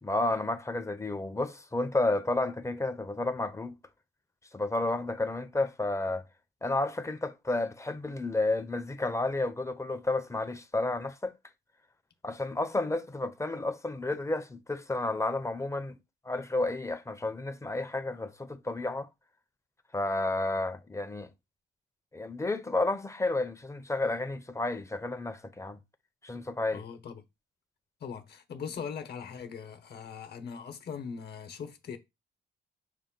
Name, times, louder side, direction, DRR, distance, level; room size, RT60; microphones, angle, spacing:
voice 1, 0.0-3.7 4.5-6.2 6.6-11.3 12.2-16.0 16.2-19.1 19.9-21.3 22.1-25.8 26.2-26.8, left 2 dB, 15° left, 0.6 m, -31 dB
voice 2, 26.7-27.2 28.0-32.0, left 6 dB, 55° left, 1.0 m, -40 dB
6.4 x 2.2 x 3.7 m
cardioid pair, 90°, 20 cm